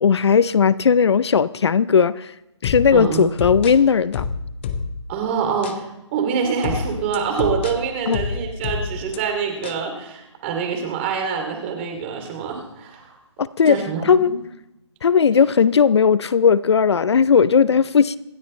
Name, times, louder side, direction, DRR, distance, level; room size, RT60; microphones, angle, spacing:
voice 1, 0.0-2.3 2.6-4.3 8.1-8.2 13.4-13.8 14.1-14.4 15.0-18.2, left 6 dB, 60° left, 17 dB, 0.6 m, -17 dB
sound 1, 2.6-5.2 5.6-5.8 6.6-9.2 9.6-9.8, left 5 dB, 25° left, 0.8 m, -28 dB
voice 2, 2.9-3.3 5.1-5.8 6.1-13.1 13.7-14.4, right 6 dB, 25° right, 4 dB, 2.7 m, -25 dB
26.5 x 12.0 x 3.2 m, 0.93 s
hypercardioid pair, 160°, 16 cm